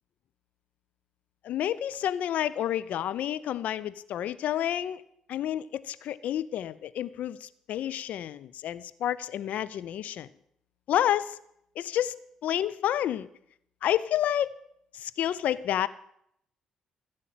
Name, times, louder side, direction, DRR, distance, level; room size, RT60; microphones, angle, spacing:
voice 1, 1.4-5.0 5.3-10.3 10.9-11.4 11.8-13.3 13.8-14.6 14.9-15.9, left 11 dB, 55° left, 17 dB, 0.5 m, -29 dB
14.5 x 6.4 x 7.5 m, 0.74 s
figure-of-eight pair, 45°, 3 cm